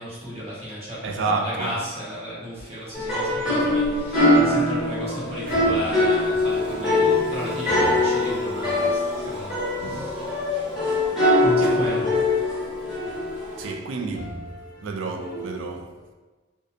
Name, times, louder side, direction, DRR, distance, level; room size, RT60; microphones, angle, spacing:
voice 1, 0.0-10.3 11.4-12.2, equal, 30° right, 0.8 m, -34 dB
voice 2, 1.0-1.8 9.8-10.1 11.7-11.9 13.6-14.5 14.8-16.0, right 4 dB, 75° right, 0.3 m, -30 dB
sound 1, 2.6-15.5, equal, 45° left, 0.4 m, -42 dB
Insect, 2.8-2.9 3.2-14.2, right 3 dB, 60° right, 1.1 m, -40 dB
sound 2, 2.9-13.7, left 2 dB, ahead, 0.8 m, -22 dB
2.5 x 2.2 x 2.4 m
head